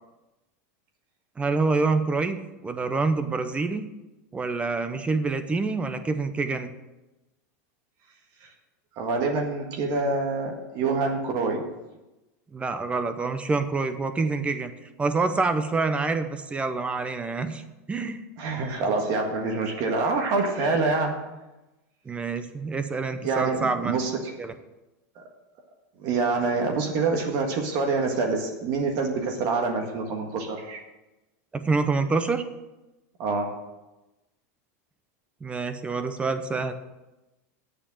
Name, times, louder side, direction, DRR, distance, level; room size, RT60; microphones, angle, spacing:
voice 1, 1.4-3.9 4.3-6.7 12.5-14.7 15.0-17.6 17.9-18.2 22.1-24.0 24.4-24.5 31.5-32.4 35.4-36.7, right 3 dB, 15° right, 10 dB, 0.7 m, -26 dB
voice 2, 9.0-11.6 18.4-21.1 23.2-24.3 25.1-25.2 26.0-30.8 33.2-33.5, right 3 dB, 45° right, 2 dB, 1.7 m, -26 dB
8.8 x 6.8 x 7.4 m, 1.0 s
supercardioid pair, 145°, 9 cm